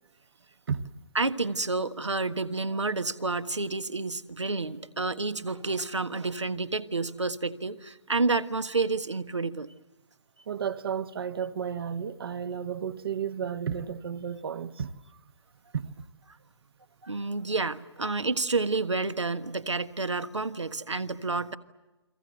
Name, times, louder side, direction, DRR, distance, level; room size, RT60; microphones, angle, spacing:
voice 1, 1.1-9.7 17.0-21.6, right 3 dB, 80° right, 1.5 m, -29 dB
voice 2, 10.5-14.9 15.7-15.9, right 7 dB, 55° right, 1.2 m, -32 dB
29.5 x 24.0 x 8.0 m
figure-of-eight pair, 130°, 15 cm